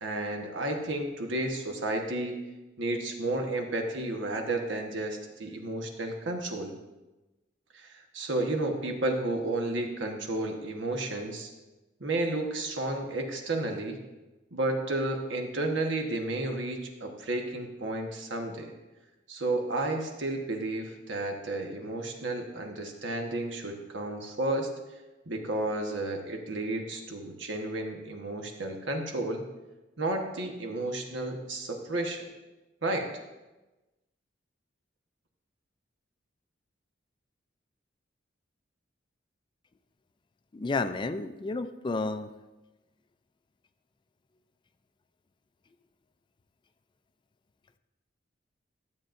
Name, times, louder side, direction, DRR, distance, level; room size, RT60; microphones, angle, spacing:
voice 1, 0.0-2.4 2.8-6.7 7.7-11.5 12.0-14.0 14.5-18.7 19.3-24.7 25.3-29.5 30.0-32.3 32.8-33.1, right 2 dB, 80° right, 3 dB, 1.2 m, -32 dB
voice 2, 40.5-42.3, left 3 dB, 25° left, 10 dB, 0.3 m, -31 dB
12.5 x 7.4 x 2.5 m, 1.1 s
head